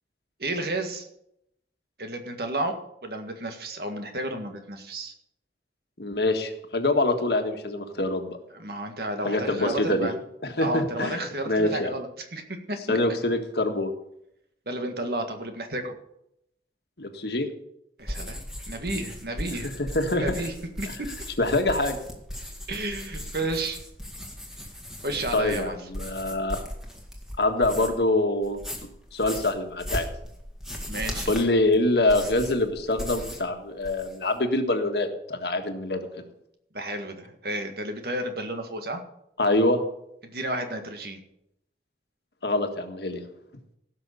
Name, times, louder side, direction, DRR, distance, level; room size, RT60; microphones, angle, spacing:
voice 1, 0.4-1.1 2.0-2.8 3.0-5.1 8.5-10.2 10.6-12.4 12.7-13.0 14.7-16.0 18.0-19.7 20.1-21.1 22.7-23.8 25.0-25.8 30.9-31.3 36.7-39.0 40.2-41.2, right 1 dB, 60° right, 5 dB, 1.8 m, -32 dB
voice 2, 6.0-8.4 9.2-10.1 10.4-11.9 12.9-13.9 17.0-17.5 19.6-20.4 20.9-21.0 21.4-22.0 25.3-26.6 27.4-28.6 29.1-30.1 31.3-36.2 39.4-39.8 42.4-43.2, left 2 dB, 70° left, 5 dB, 1.6 m, -25 dB
sound 1, 18.0-28.1 28.4-33.5 33.8-34.3, equal, 5° right, 2.0 m, -37 dB
16.5 x 6.3 x 6.8 m, 0.78 s
head